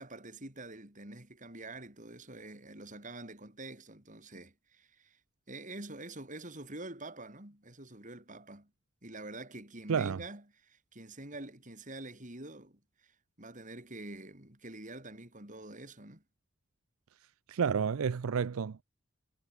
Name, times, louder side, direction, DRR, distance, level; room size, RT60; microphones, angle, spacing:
voice 1, 0.0-5.2 5.5-8.7 9.0-16.2, right 2 dB, 35° right, 5.4 m, -46 dB
voice 2, 9.9-10.2 17.5-18.8, right 6 dB, 90° right, 0.5 m, -30 dB
head